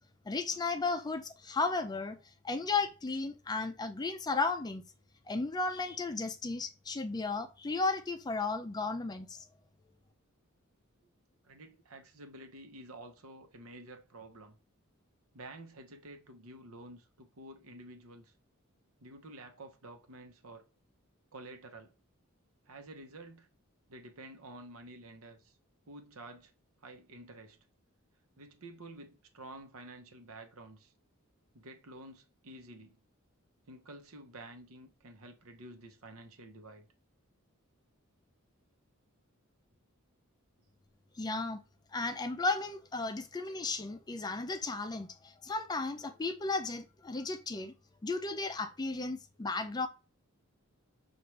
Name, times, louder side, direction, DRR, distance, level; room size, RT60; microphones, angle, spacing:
voice 1, 0.3-2.2 2.4-4.8 5.3-9.4 41.2-41.6 41.9-47.7 48.0-49.9, left 3 dB, 20° left, 0.4 m, -34 dB
voice 2, 11.4-14.6 15.3-18.3 19.0-20.7 21.3-21.9 22.7-23.5 23.9-25.6 25.9-26.5 26.8-27.6 28.4-30.9 31.5-33.0 33.7-36.9, right 2 dB, 90° right, 0.9 m, -50 dB
5.7 x 2.5 x 3.1 m
head